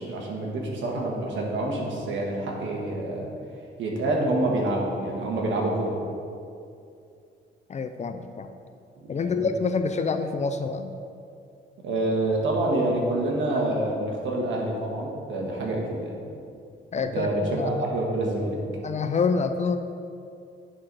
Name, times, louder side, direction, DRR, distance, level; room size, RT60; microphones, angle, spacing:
voice 1, 0.0-3.3 3.8-6.0 9.0-9.5 11.8-16.2 17.1-18.6, right 2 dB, 70° right, -1 dB, 1.6 m, -27 dB
voice 2, 7.7-8.5 9.1-10.9 16.9-17.8 18.8-19.8, left 5 dB, 35° left, 8 dB, 0.5 m, -27 dB
9.9 x 4.2 x 4.8 m, 2.5 s
cardioid pair, 90°, 20 cm